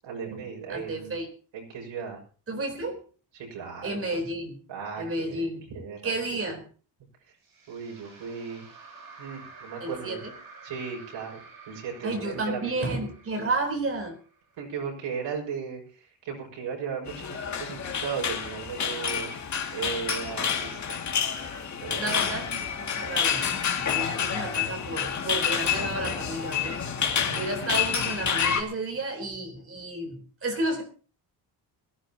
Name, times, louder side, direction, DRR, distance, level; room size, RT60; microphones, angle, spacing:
voice 1, 0.0-1.2 1.5-2.2 3.3-4.2 4.7-6.5 7.2-7.3 7.7-8.7 9.2-10.2 10.6-11.4 11.7-12.7 14.6-19.3 19.7-21.1 21.8-22.3 27.1-27.5, right 6 dB, 80° right, -1 dB, 6.0 m, -36 dB
voice 2, 0.7-1.3 2.5-3.0 3.8-4.6 5.0-5.7 6.0-6.7 9.8-10.3 12.0-14.2 21.8-23.5 23.9-26.8 27.1-30.8, right 2 dB, 30° right, 4 dB, 4.0 m, -32 dB
sound 1, 7.4-14.7, right 4 dB, 50° right, 6.7 m, -49 dB
sound 2, 17.1-28.6, left 7 dB, 40° left, 2.3 m, -28 dB
22.0 x 15.0 x 2.9 m, 0.39 s
cardioid pair, 170°, 45 cm